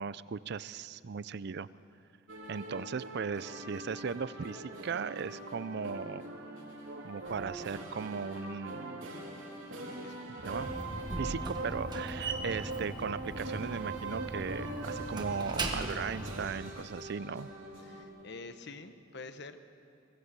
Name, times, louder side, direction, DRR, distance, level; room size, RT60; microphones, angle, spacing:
voice 1, 0.0-1.7 2.5-6.2 7.0-9.0 10.4-10.7 11.2-17.5, right 5 dB, 55° right, 17 dB, 0.5 m, -37 dB
sound 1, 2.3-18.0, right 2 dB, 80° right, 3.7 m, -42 dB
sound 2, 3.4-18.8, left 1 dB, 80° left, 6.8 m, -62 dB
voice 2, 9.9-10.6 17.8-19.6, left 3 dB, 60° left, 9 dB, 1.1 m, -48 dB
Slam, 10.4-16.6, right 2 dB, 20° right, 1.4 m, -39 dB
21.5 x 15.5 x 8.2 m, 2.6 s
head